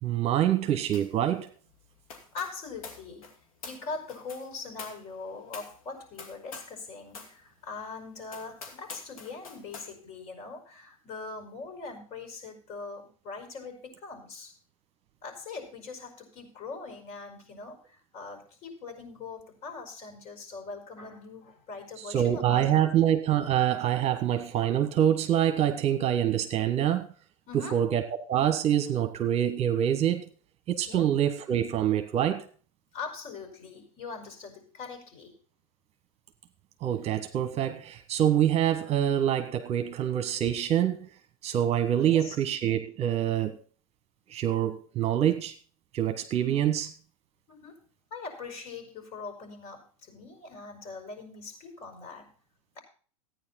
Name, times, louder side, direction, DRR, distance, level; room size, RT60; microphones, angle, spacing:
voice 1, 0.0-1.5 22.1-27.1 27.7-30.2 30.7-32.4 36.8-41.1 41.4-43.6 44.3-45.5 45.9-46.9, right 10 dB, 35° right, 1.3 m, -26 dB
sound 1, 0.9-1.2 1.5-6.8 7.1-7.4 7.8-7.9 8.3-9.9, left 4 dB, 75° left, 2.6 m, -46 dB
voice 2, 2.3-3.3 3.6-14.5 15.2-22.8 27.5-27.8 30.9-31.1 32.9-35.4 39.0-39.1 42.0-42.4 47.5-47.8 48.1-52.3, left 4 dB, 45° left, 5.1 m, -42 dB
14.5 x 9.5 x 4.2 m
hypercardioid pair, 95°, 18 cm